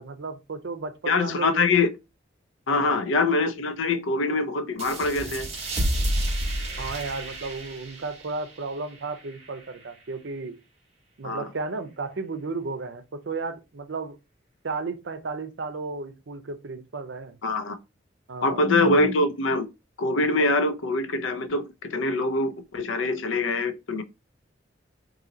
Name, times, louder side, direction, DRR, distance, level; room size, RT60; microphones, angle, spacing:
voice 1, 0.0-1.7 2.7-3.0 6.8-10.6 11.2-14.2 14.6-17.4 18.3-19.1, right 3 dB, 65° right, 0.6 m, -34 dB
voice 2, 1.1-1.9 2.7-5.5 11.2-11.5 17.4-17.8 18.4-19.7 20.0-24.0, left 2 dB, 80° left, 0.5 m, -24 dB
sound 1, 4.8-10.0, right 1 dB, 35° right, 1.2 m, -31 dB
2.7 x 2.7 x 3.8 m
head